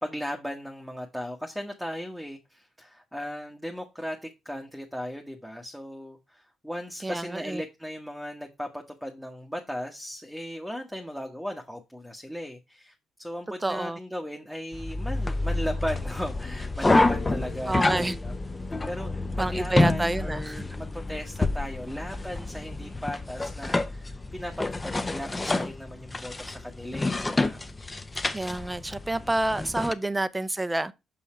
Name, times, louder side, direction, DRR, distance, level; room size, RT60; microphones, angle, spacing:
voice 1, 0.0-18.3 18.9-27.6 29.1-29.3 29.7-29.8, equal, ahead, 1.2 m, -37 dB
voice 2, 7.0-7.6 13.6-14.0 17.7-18.2 19.4-20.6 28.3-30.9, right 2 dB, 15° right, 0.6 m, -28 dB
sound 1, 14.7-29.9, left 2 dB, 20° left, 0.7 m, -28 dB
6.1 x 5.6 x 4.3 m
cardioid pair, 90°, 0 cm